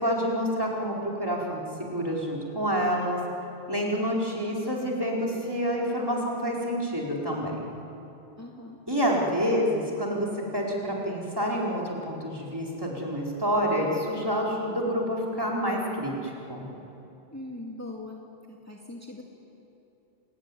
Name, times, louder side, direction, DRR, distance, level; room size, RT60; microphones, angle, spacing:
voice 1, 0.0-3.2 3.7-7.6 8.9-10.3 10.5-16.7, equal, 20° right, -3 dB, 4.6 m, -28 dB
voice 2, 8.4-8.8 17.3-18.2 18.5-19.2, left 2 dB, 15° left, -1 dB, 2.4 m, -40 dB
28.5 x 21.0 x 10.0 m, 2.9 s
omnidirectional pair, 1.1 m